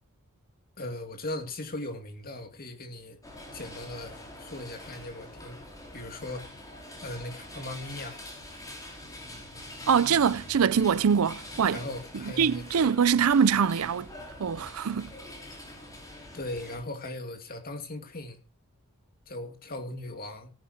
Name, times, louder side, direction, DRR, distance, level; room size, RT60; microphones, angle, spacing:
voice 1, 0.8-3.2 3.5-5.6 5.9-6.4 7.0-8.2 11.7-12.9 16.3-18.4 19.3-20.5, left 1 dB, 45° left, 2.4 m, -38 dB
sound 1, 3.2-16.8, left 1 dB, 15° left, 4.6 m, -45 dB
voice 2, 9.9-11.8 12.4-14.1 14.4-15.1, right 7 dB, 70° right, 0.5 m, -23 dB
17.5 x 10.0 x 2.8 m
head